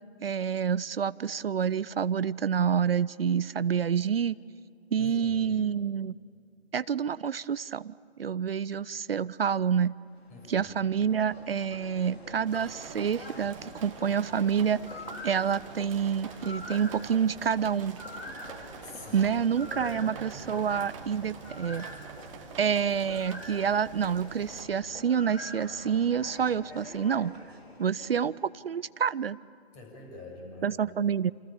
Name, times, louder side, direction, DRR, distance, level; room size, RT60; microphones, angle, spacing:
voice 1, 0.2-4.4 4.9-6.1 6.7-7.9 8.2-10.0 10.5-14.8 15.2-18.0 19.1-21.9 22.6-27.4 27.8-29.4 30.6-31.3, right 7 dB, 65° right, 19 dB, 0.6 m, -28 dB
voice 2, 5.0-5.6 10.3-10.7 18.8-19.9 29.7-30.8, left 1 dB, 20° left, 2 dB, 6.8 m, -46 dB
sound 1, 10.0-28.4, left 2 dB, 75° left, 4.9 m, -45 dB
sound 2, 12.5-24.7, right 8 dB, 30° right, 1.8 m, -47 dB
29.0 x 28.0 x 7.2 m, 2.4 s
figure-of-eight pair, 135°, 32 cm